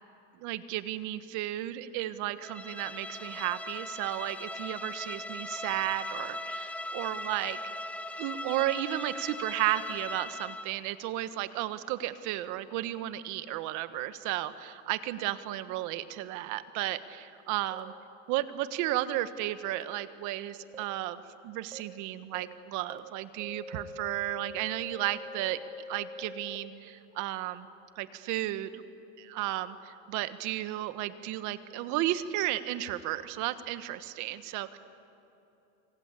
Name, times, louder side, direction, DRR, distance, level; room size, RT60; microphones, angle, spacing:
voice 1, 0.4-7.6 8.2-17.9 18.3-25.6 25.9-27.7 27.9-28.8 29.2-34.8, right 14 dB, 55° right, 13 dB, 1.4 m, -33 dB
Bowed string instrument, 2.4-10.8, left 1 dB, 5° left, 0.6 m, -39 dB
sound 1, 17.7-17.8 18.7-18.8 19.7-19.8 20.7-20.8 21.7-21.8 22.3-22.4 22.9-23.0 23.4-26.6, left 2 dB, 10° right, 1.6 m, -44 dB
27.0 x 25.0 x 8.4 m, 2.9 s
supercardioid pair, 140°, 35 cm